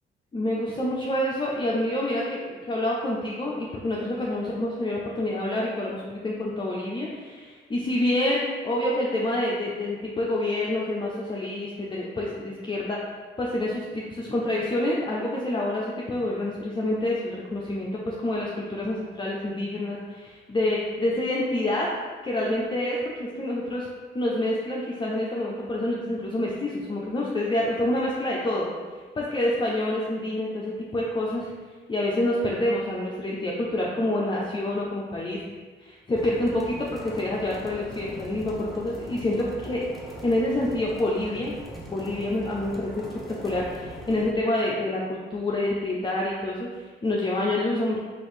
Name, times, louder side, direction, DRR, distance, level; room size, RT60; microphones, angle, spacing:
voice 1, 0.3-13.0 13.4-21.9 22.2-23.9 24.1-28.7 29.2-31.5 31.9-35.4 35.8-41.5 41.9-43.0 43.4-48.0, left 1 dB, 25° left, -4 dB, 0.6 m, -27 dB
sound 1, 36.2-44.3, right 1 dB, ahead, 0.9 m, -41 dB
4.0 x 2.6 x 4.8 m, 1.5 s
cardioid pair, 90°, 20 cm